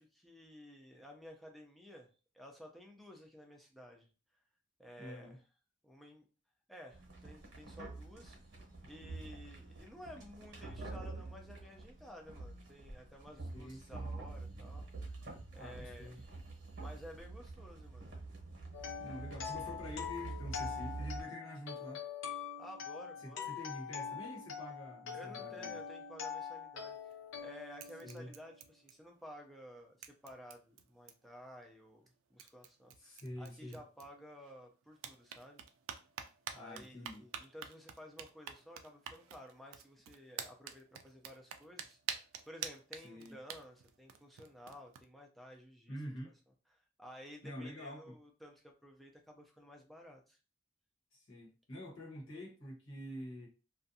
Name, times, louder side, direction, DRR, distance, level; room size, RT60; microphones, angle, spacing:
voice 1, 0.0-2.1 2.3-4.1 4.8-5.4 5.8-6.3 6.7-8.4 8.8-14.9 15.5-16.3 16.8-18.1 22.6-23.5 25.1-27.0 27.4-35.6 36.5-42.0 42.5-46.0 46.7-50.4, equal, ahead, 0.4 m, -54 dB
voice 2, 5.0-5.4 13.5-14.1 15.6-16.2 19.0-22.0 23.2-25.8 28.0-28.3 33.0-33.8 36.5-37.3 43.0-43.4 45.9-46.3 47.4-48.2 51.1-53.5, equal, 85° left, 1.1 m, -47 dB
sound 1, 6.9-21.2, right 3 dB, 55° right, 0.9 m, -47 dB
sound 2, 18.7-28.6, left 7 dB, 70° left, 0.5 m, -44 dB
sound 3, 26.9-27.4 27.8-29.3 29.6-29.7 30.0-31.4 32.1-32.2 32.4-34.5 34.9-45.0, right 8 dB, 85° right, 0.3 m, -48 dB
2.5 x 2.3 x 2.6 m
head